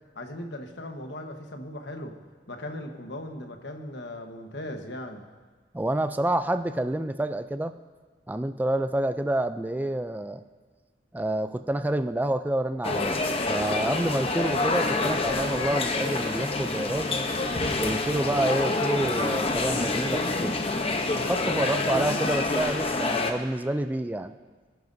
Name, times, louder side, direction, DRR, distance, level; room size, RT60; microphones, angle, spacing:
voice 1, 0.1-2.1 2.5-5.2, left 1 dB, 75° left, 5 dB, 1.2 m, -38 dB
voice 2, 5.7-7.7 8.3-10.4 11.1-17.1 17.8-20.5 21.2-24.3, right 1 dB, 10° right, 9 dB, 0.3 m, -28 dB
sound 1, 12.8-23.3, left 3 dB, 35° left, 0.8 m, -27 dB
22.0 x 11.0 x 2.7 m, 1.4 s
head